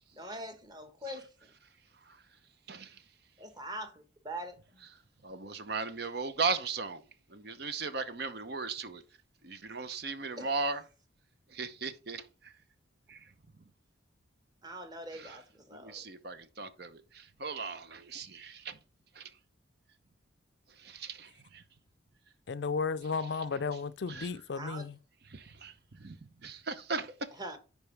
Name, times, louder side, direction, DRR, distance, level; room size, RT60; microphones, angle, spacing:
voice 1, 0.1-1.5 3.4-4.8 10.4-10.5 14.6-16.0 24.5-24.9 27.4-27.6, right 1 dB, 20° right, 1.3 m, -43 dB
voice 2, 2.7-3.0 5.2-7.0 7.3-9.0 9.4-10.8 11.5-12.5 13.1-13.3 15.1-15.4 15.7-18.8 19.1-19.3 20.7-21.6 24.1-24.3 25.3-27.1, right 4 dB, 55° right, 0.8 m, -37 dB
voice 3, 22.5-25.0, left 5 dB, 65° left, 0.5 m, -34 dB
10.5 x 4.8 x 3.4 m
head